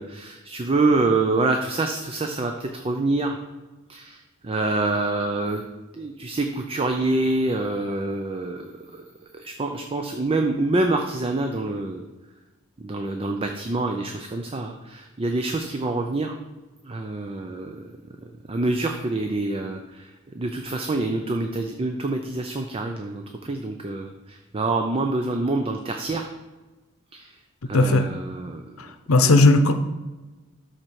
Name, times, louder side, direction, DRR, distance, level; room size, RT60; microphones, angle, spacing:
voice 1, 0.0-3.4 3.9-5.6 5.9-9.0 9.3-12.1 12.8-16.4 16.8-17.9 18.5-26.3 27.1-27.3 27.7-28.6 29.2-29.3, right 2 dB, 25° right, 4 dB, 0.5 m, -26 dB
voice 2, 27.7-28.1 28.8-29.7, left 2 dB, 85° left, 8 dB, 0.8 m, -17 dB
13.0 x 4.3 x 4.7 m, 1.2 s
head